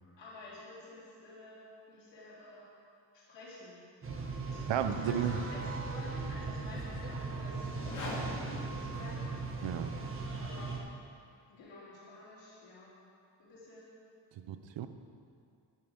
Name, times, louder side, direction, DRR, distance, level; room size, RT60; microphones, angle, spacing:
voice 1, 0.0-2.7 3.1-3.8 4.5-9.3 10.2-10.8 11.5-12.9 13.4-14.0, left 2 dB, 80° left, -8 dB, 3.3 m, -50 dB
sound 1, 4.0-10.8, right 3 dB, 30° right, 1.4 m, -38 dB
voice 2, 4.7-5.4 9.6-9.9 14.4-14.9, right 9 dB, 80° right, 9 dB, 0.9 m, -33 dB
sound 2, 7.7-9.8, left 1 dB, 45° left, 2.5 m, -42 dB
11.5 x 11.0 x 5.3 m, 2.3 s
wide cardioid pair, 140°, 43 cm